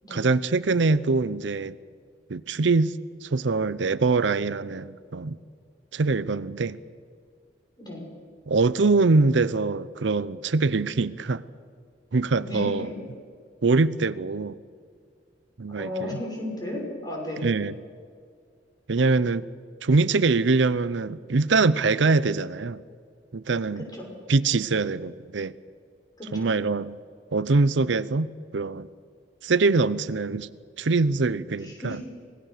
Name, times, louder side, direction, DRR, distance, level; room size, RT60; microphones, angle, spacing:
voice 1, 0.1-1.8 2.3-5.4 5.9-6.8 8.5-11.4 12.1-12.9 13.6-14.6 15.6-16.2 17.4-17.7 18.9-19.5 19.8-22.8 23.3-23.8 24.3-25.5 26.3-27.0 27.3-28.9 29.4-30.5 30.8-32.0, right 3 dB, 90° right, 16 dB, 0.7 m, -23 dB
voice 2, 12.4-12.9 15.8-17.4 23.8-24.1 26.2-26.3 31.6-32.1, left 1 dB, 20° left, -1 dB, 6.0 m, -34 dB
25.5 x 18.5 x 6.6 m, 2.1 s
head